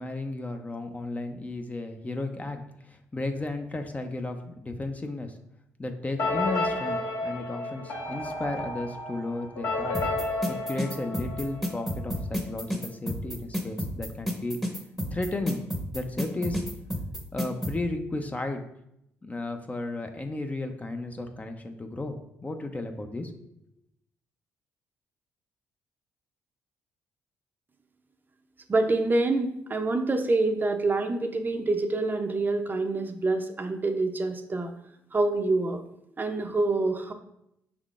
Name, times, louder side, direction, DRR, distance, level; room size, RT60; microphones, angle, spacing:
voice 1, 0.0-5.4 5.8-10.0 10.3-14.6 15.1-15.6 15.9-16.6 17.3-18.6 19.2-23.3, left 2 dB, 25° left, 6 dB, 0.5 m, -34 dB
sound 1, 6.2-11.9, left 2 dB, 75° left, 1.2 m, -31 dB
sound 2, 9.9-17.7, equal, 5° left, 0.9 m, -30 dB
voice 2, 28.7-34.7 35.1-35.8 36.2-37.1, right 2 dB, 30° right, 6 dB, 0.5 m, -26 dB
5.5 x 3.5 x 2.5 m, 0.79 s
supercardioid pair, 65°, 6 cm